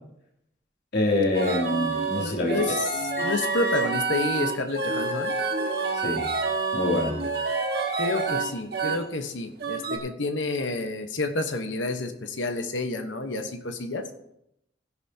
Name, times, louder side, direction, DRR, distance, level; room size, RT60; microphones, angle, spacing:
voice 1, 0.9-2.7 5.9-6.3 6.7-7.2, left 2 dB, 60° left, -2 dB, 2.9 m, -25 dB
sound 1, 1.3-9.0 9.6-10.0, right 3 dB, 60° right, 1.6 m, -28 dB
voice 2, 2.2-2.9 3.2-5.3 8.0-14.0, left 2 dB, 85° left, 6 dB, 1.2 m, -29 dB
16.0 x 10.5 x 2.9 m, 0.80 s
head